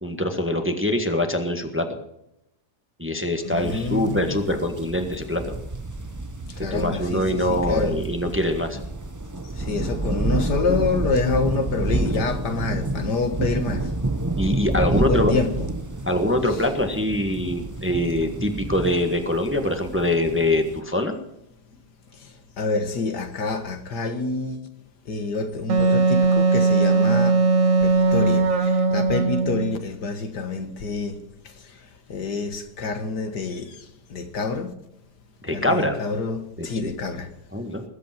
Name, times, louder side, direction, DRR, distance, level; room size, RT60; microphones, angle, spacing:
voice 1, 0.0-1.9 3.0-5.5 6.6-8.8 12.0-12.2 14.4-15.3 16.1-21.2 35.4-36.0 36.6-36.7 37.5-37.8, left 1 dB, 5° right, 1.4 m, -24 dB
voice 2, 3.4-4.3 6.5-8.0 9.4-14.0 14.8-15.7 22.1-24.7 25.1-27.5 27.8-34.7 35.5-37.3, left 4 dB, 70° left, 2.1 m, -27 dB
sound 1, 3.6-20.8, right 2 dB, 25° right, 0.4 m, -29 dB
Wind instrument woodwind instrument, 25.7-29.8, right 3 dB, 50° right, 1.5 m, -19 dB
21.0 x 8.5 x 6.0 m
omnidirectional pair, 1.9 m